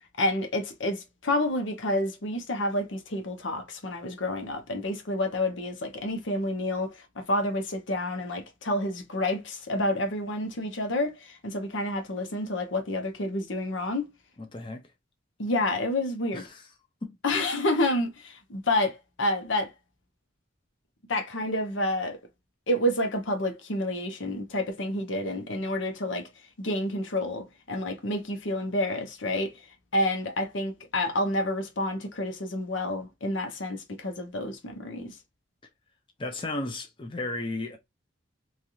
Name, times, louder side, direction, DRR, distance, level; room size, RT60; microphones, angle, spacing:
voice 1, 0.2-14.1 15.4-16.4 17.2-19.7 21.1-22.2 22.7-26.3 26.6-29.5 29.9-35.2, left 1 dB, 75° left, 0.9 m, -29 dB
voice 2, 14.4-14.8 16.3-16.7 17.0-17.2 36.2-37.8, left 2 dB, 25° left, 0.5 m, -34 dB
3.3 x 2.4 x 2.7 m
head